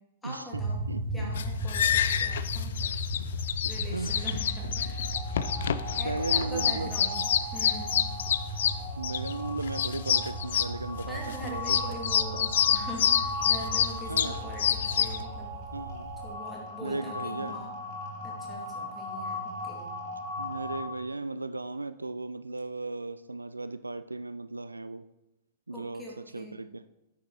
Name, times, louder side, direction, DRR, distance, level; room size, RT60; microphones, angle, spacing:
voice 1, 0.2-0.8 1.1-2.9 3.7-5.2 5.9-7.2 7.5-8.0 11.1-15.6 16.2-17.8 18.2-19.9 25.7-26.6, left 1 dB, 10° left, -3 dB, 2.6 m, -42 dB
sound 1, 0.5-16.3, right 1 dB, 10° right, 2.4 m, -37 dB
voice 2, 0.9-1.3 3.9-4.2 6.0-7.0 9.0-11.8 14.1-14.4 15.7-16.1 16.8-17.6 20.4-25.0 25.7-26.0 26.3-26.8, right 2 dB, 85° right, 13 dB, 0.3 m, -36 dB
sound 2, 1.3-15.2, left 9 dB, 60° left, 0.4 m, -28 dB
sound 3, 4.2-20.8, equal, 40° right, 2.9 m, -39 dB
9.7 x 6.1 x 4.2 m, 0.92 s
figure-of-eight pair, 100°, 0 cm